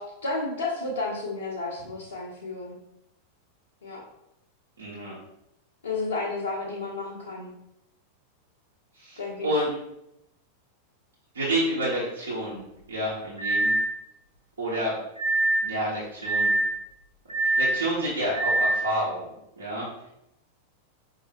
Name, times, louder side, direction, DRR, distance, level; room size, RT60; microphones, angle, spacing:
voice 1, 0.0-2.8 3.8-4.0 5.8-7.5 9.2-9.5, left 3 dB, 70° left, -5 dB, 0.8 m, -32 dB
voice 2, 4.8-5.1 8.9-9.7 11.3-12.6 12.9-13.7 14.6-14.9 15.6-16.6 17.4-19.9, right 1 dB, 70° right, -8 dB, 1.1 m, -29 dB
sound 1, 13.4-13.9 15.2-15.7 16.2-16.7 17.3-17.8 18.3-18.8, right 2 dB, 85° right, 0.8 m, -24 dB
5.3 x 2.8 x 2.9 m, 0.83 s
figure-of-eight pair, 90°, 0 cm